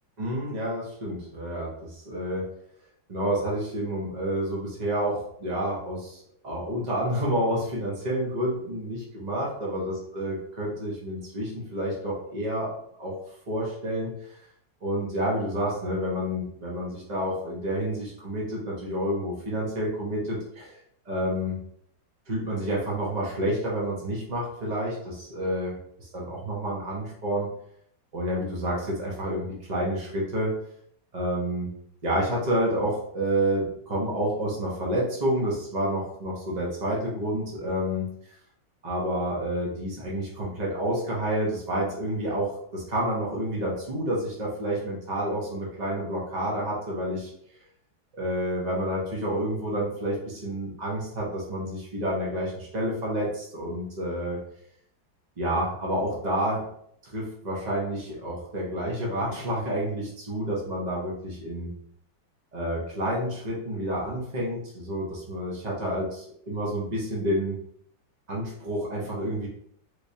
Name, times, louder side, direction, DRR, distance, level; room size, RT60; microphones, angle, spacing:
voice 1, 0.2-2.5 3.1-12.7 13.0-13.2 13.5-14.4 14.8-20.8 21.1-21.6 22.3-27.5 28.1-30.5 31.1-31.7 32.0-38.4 38.8-47.3 48.1-54.4 55.4-56.6 57.0-61.7 62.5-67.6 68.3-69.5, equal, 85° right, -4 dB, 0.3 m, -29 dB
3.4 x 3.1 x 2.7 m, 0.69 s
omnidirectional pair, 2.1 m